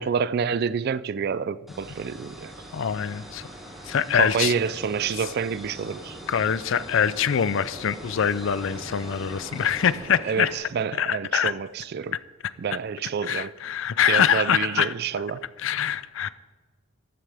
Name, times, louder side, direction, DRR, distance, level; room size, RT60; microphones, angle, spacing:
voice 1, 0.0-2.5 4.1-6.2 10.2-12.1 12.6-13.5 14.1-15.5, right 6 dB, 45° right, 0.3 m, -28 dB
sound 1, 1.7-10.0, equal, ahead, 1.4 m, -45 dB
sound 2, 1.9-10.5, equal, 30° right, 3.5 m, -44 dB
voice 2, 2.7-3.5 3.8-4.5 6.3-10.5 11.0-11.5 13.3-14.9 15.6-16.3, left 8 dB, 60° left, 0.4 m, -24 dB
14.5 x 11.0 x 3.4 m
head